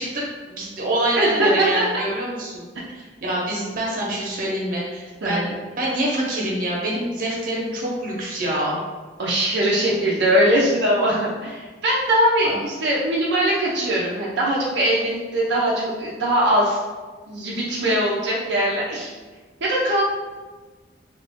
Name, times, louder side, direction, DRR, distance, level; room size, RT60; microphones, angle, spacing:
voice 1, 0.0-2.7 2.9-5.5 5.8-8.8 12.4-12.6, right 1 dB, 50° right, -4 dB, 0.9 m, -26 dB
voice 2, 1.2-1.8 5.2-5.5 9.2-16.8 17.3-19.1 19.6-20.0, right 1 dB, 85° right, -5 dB, 0.6 m, -21 dB
2.9 x 2.5 x 3.5 m, 1.3 s
head